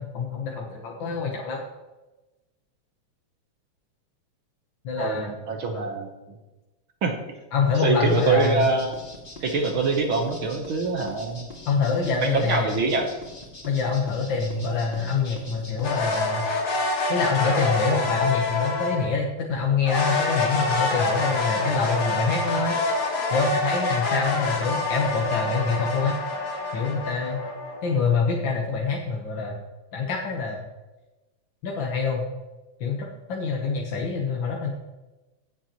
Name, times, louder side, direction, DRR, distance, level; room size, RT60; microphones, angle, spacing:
voice 1, 0.0-1.6 4.8-5.3 5.7-5.8 7.5-8.7 11.7-12.7 13.6-16.5 17.1-22.8 23.3-26.2 26.7-27.4 27.8-29.6 29.9-30.6 31.6-32.2 32.8-34.7, left 5 dB, 55° left, -1 dB, 1.5 m, -25 dB
voice 2, 4.9-6.1 7.0-7.1 7.7-8.9 9.4-11.5 12.2-13.1, right 4 dB, 60° right, 3 dB, 1.5 m, -24 dB
sound 1, 8.1-16.2, left 1 dB, 20° left, 2.0 m, -42 dB
sound 2, 15.8-19.2 19.8-28.0, left 3 dB, 75° left, 4.1 m, -26 dB
16.0 x 7.7 x 3.0 m, 1.1 s
omnidirectional pair, 3.4 m